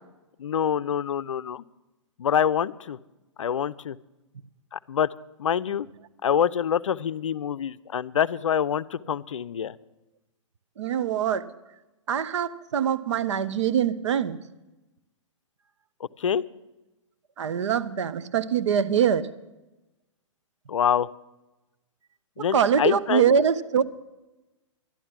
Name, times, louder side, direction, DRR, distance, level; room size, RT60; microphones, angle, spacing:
voice 1, 0.4-1.6 2.2-3.0 3.4-4.0 4.7-5.1 5.4-5.9 6.2-9.8 16.2-16.4 20.7-21.1 22.4-23.3, left 8 dB, 75° left, 17 dB, 0.5 m, -26 dB
voice 2, 10.8-11.4 12.1-14.4 17.4-19.3 22.5-23.8, right 8 dB, 65° right, 12 dB, 0.7 m, -23 dB
12.0 x 11.5 x 5.9 m, 1.0 s
hypercardioid pair, 120°, 16 cm